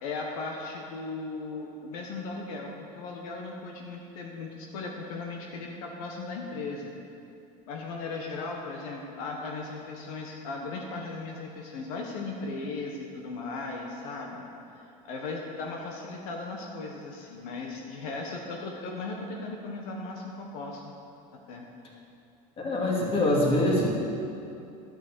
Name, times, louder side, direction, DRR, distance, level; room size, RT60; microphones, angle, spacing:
voice 1, 0.0-6.9 7.7-14.4 15.0-20.9 21.5-21.7, left 3 dB, 80° left, 0 dB, 1.3 m, -37 dB
voice 2, 22.6-23.9, left 1 dB, 30° left, -2 dB, 2.5 m, -24 dB
12.0 x 6.3 x 6.9 m, 2.7 s
supercardioid pair, 125°, 18 cm